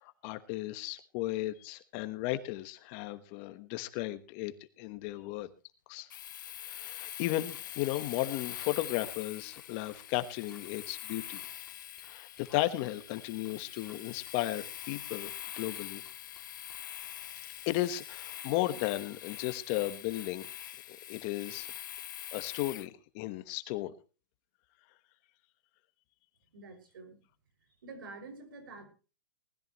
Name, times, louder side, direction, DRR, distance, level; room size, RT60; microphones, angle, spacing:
voice 1, 0.0-5.5 5.9-6.1 6.7-11.5 12.0-16.0 17.7-20.5 20.9-21.7 22.3-23.9, left 16 dB, 35° left, 12 dB, 1.2 m, -35 dB
Domestic sounds home sounds, 6.1-22.9, left 12 dB, 65° left, 0.9 m, -44 dB
sound 1, 6.7-7.0 7.5-8.3 8.6-10.8 11.1-12.6 12.8-13.0 13.4-14.0 14.3-16.8, left 3 dB, 5° left, 3.7 m, -60 dB
voice 2, 26.5-27.2 27.8-28.8, right 3 dB, 80° right, 7 dB, 6.0 m, -47 dB
19.5 x 14.0 x 3.0 m, 0.33 s
hypercardioid pair, 155°, 11 cm